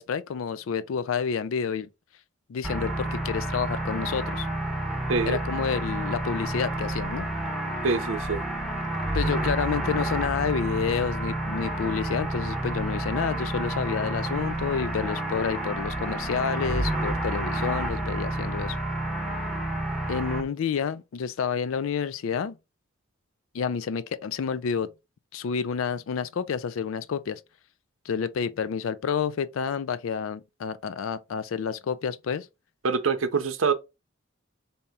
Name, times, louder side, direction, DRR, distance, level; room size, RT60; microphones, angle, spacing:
voice 1, 0.0-1.9 2.5-4.5 5.3-7.3 9.1-18.8 20.1-22.6 23.5-24.9 25.3-27.4 28.1-32.5, left 6 dB, 80° left, 0.4 m, -29 dB
sound 1, 2.6-20.4, right 1 dB, ahead, 0.9 m, -30 dB
voice 2, 7.8-8.4 32.8-33.7, right 4 dB, 75° right, 0.6 m, -25 dB
4.1 x 2.8 x 3.4 m
head